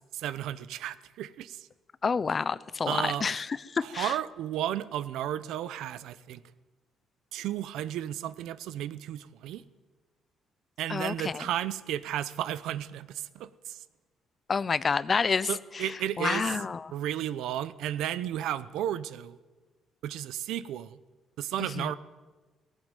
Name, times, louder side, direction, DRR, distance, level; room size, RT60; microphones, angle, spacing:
voice 1, 0.0-1.7 2.9-3.2 3.8-6.4 7.3-9.6 10.8-13.8 15.5-16.5 16.9-19.4 20.0-21.0 21.4-21.9, right 11 dB, 85° right, 16 dB, 0.8 m, -33 dB
voice 2, 2.0-4.1 10.9-11.4 14.5-15.5 15.7-15.9 16.2-16.9 21.8-21.9, left 5 dB, 30° left, 18 dB, 0.6 m, -29 dB
18.0 x 17.0 x 9.1 m, 1.3 s
cardioid pair, 145°, 0 cm